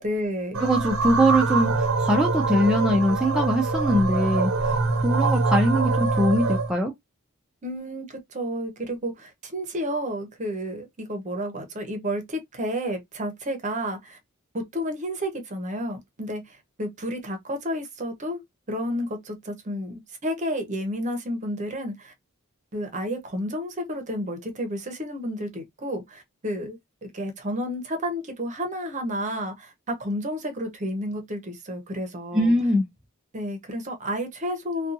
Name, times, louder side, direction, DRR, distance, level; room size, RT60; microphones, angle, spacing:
voice 1, 0.0-0.6 7.6-14.2 14.5-18.4 18.7-22.1 22.7-32.5 33.3-34.9, equal, 35° right, 0.7 m, -31 dB
sound 1, 0.5-6.7, right 3 dB, 70° right, 0.6 m, -24 dB
voice 2, 0.6-4.5 5.0-6.9 32.3-32.9, equal, 5° right, 0.4 m, -22 dB
2.6 x 2.3 x 2.5 m
head